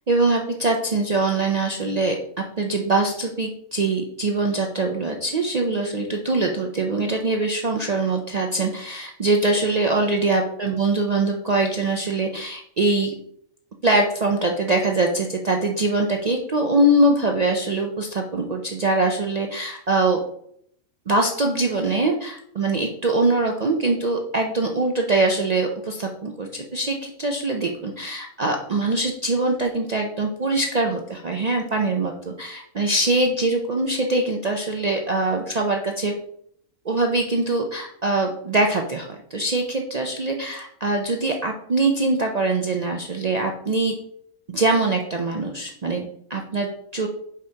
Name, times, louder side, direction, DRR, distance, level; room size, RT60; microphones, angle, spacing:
voice 1, 0.1-2.2 2.6-13.1 13.8-20.2 21.1-36.1 36.8-43.9 44.5-47.1, right 2 dB, 60° right, 2 dB, 0.4 m, -23 dB
7.6 x 5.0 x 2.8 m, 0.71 s
omnidirectional pair, 1.4 m